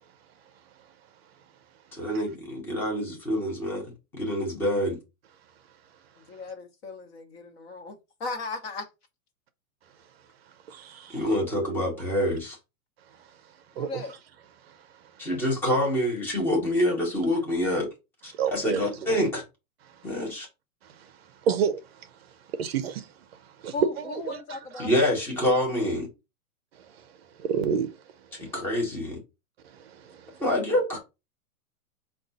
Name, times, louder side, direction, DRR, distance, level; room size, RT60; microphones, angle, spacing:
voice 1, 1.9-5.0 11.1-12.6 15.2-17.9 18.2-19.4 20.0-20.5 24.8-26.1 28.4-29.2 30.4-31.0, equal, 5° left, 0.7 m, -26 dB
voice 2, 6.3-8.9 11.3-11.6 13.8-14.1 23.7-25.2, left 3 dB, 45° left, 1.1 m, -37 dB
voice 3, 10.7-11.3 13.8-14.0 14.7-14.8 18.3-19.1 20.8-21.1 21.4-22.1 22.5-23.1 23.4-23.7 24.1-24.8 26.8-27.1 27.4-27.9 28.4-28.5 29.6-30.4, right 7 dB, 45° right, 0.5 m, -31 dB
5.0 x 2.4 x 3.9 m
hypercardioid pair, 160°, 43 cm